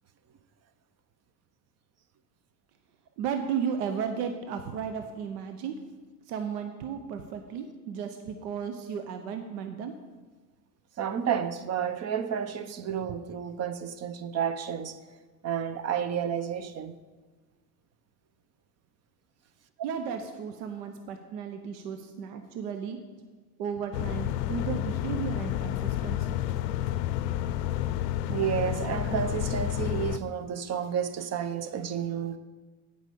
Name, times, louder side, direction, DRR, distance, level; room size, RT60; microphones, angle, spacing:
voice 1, 3.2-5.8 6.3-9.9 19.8-23.0 23.6-26.2, right 7 dB, 75° right, 1.0 m, -34 dB
voice 2, 11.0-15.0 15.4-16.9 28.3-32.4, right 8 dB, 35° right, 0.7 m, -31 dB
sound 1, 23.9-30.2, left 12 dB, 85° left, 0.5 m, -30 dB
8.9 x 5.4 x 6.9 m
supercardioid pair, 95°, 48 cm